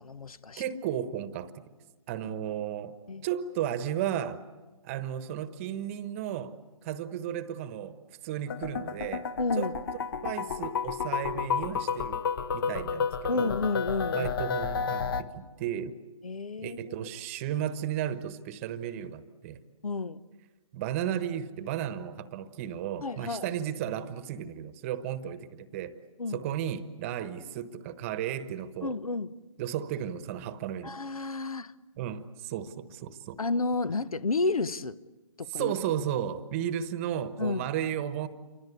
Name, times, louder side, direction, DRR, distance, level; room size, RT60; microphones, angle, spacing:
voice 1, 0.0-0.6 3.1-3.3 9.4-9.7 13.3-14.3 16.2-16.8 19.8-20.2 23.0-23.5 26.2-26.4 28.8-29.3 30.8-31.7 33.4-35.0 35.4-35.7 37.4-37.6, left 3 dB, 80° left, 1.2 m, -31 dB
voice 2, 0.6-1.5 2.1-2.9 3.2-4.4 4.8-6.5 6.8-8.0 8.2-9.2 9.6-9.7 10.2-12.2 12.5-13.5 14.1-16.0 16.6-19.6 20.7-26.0 26.3-29.0 29.6-30.9 32.0-33.4 35.5-38.3, right 10 dB, 25° right, 1.2 m, -34 dB
sound 1, 8.5-15.2, left 6 dB, 40° left, 1.2 m, -31 dB
28.5 x 25.0 x 8.3 m
figure-of-eight pair, 150°, 18 cm